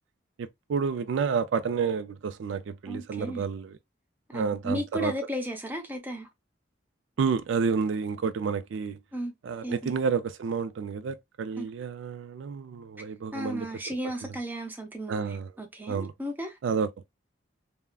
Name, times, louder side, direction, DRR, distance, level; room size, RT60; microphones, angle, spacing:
voice 1, 0.4-3.8 4.3-5.1 7.2-9.0 9.4-13.7 15.1-15.5 15.9-16.1 16.6-17.0, right 5 dB, 80° right, 0.4 m, -30 dB
voice 2, 2.9-3.4 4.3-6.3 9.1-9.3 9.6-9.9 11.6-11.7 13.3-16.5, equal, 10° right, 0.5 m, -34 dB
3.4 x 2.1 x 2.2 m
head